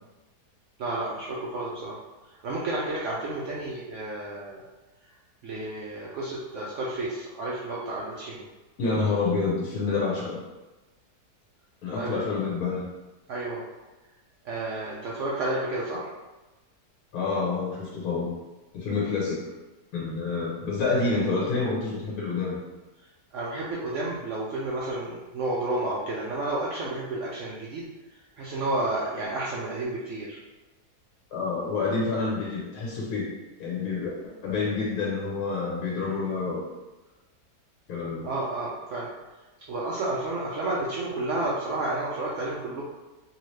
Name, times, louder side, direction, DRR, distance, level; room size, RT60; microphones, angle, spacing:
voice 1, 0.8-2.0 2.4-4.6 5.4-8.4 11.9-12.2 13.3-13.6 14.4-16.1 23.3-27.9 28.4-30.4 38.2-39.1 39.7-42.8, right 2 dB, 70° right, -5 dB, 0.7 m, -31 dB
voice 2, 8.8-10.4 11.8-12.8 17.1-18.3 18.7-19.4 19.9-22.6 31.3-33.3 33.6-34.1 34.4-36.6 37.9-38.3, left 4 dB, 70° left, -4 dB, 1.1 m, -28 dB
2.8 x 2.7 x 3.1 m, 1.1 s
omnidirectional pair, 1.7 m